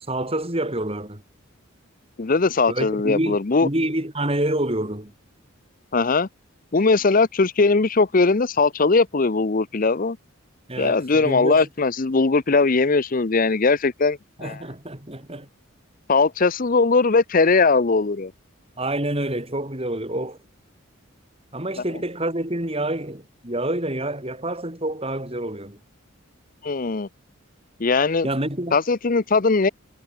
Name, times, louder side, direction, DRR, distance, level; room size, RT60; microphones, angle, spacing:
voice 1, 0.1-1.2 2.7-5.1 10.7-11.7 14.4-15.5 18.8-20.4 21.5-25.8 28.2-28.8, right 1 dB, 30° right, 4.3 m, -27 dB
voice 2, 2.2-3.7 5.9-6.3 6.7-10.2 10.8-14.6 16.1-18.3 26.6-27.1 27.8-28.3 28.7-29.7, left 4 dB, 40° left, 0.7 m, -20 dB
head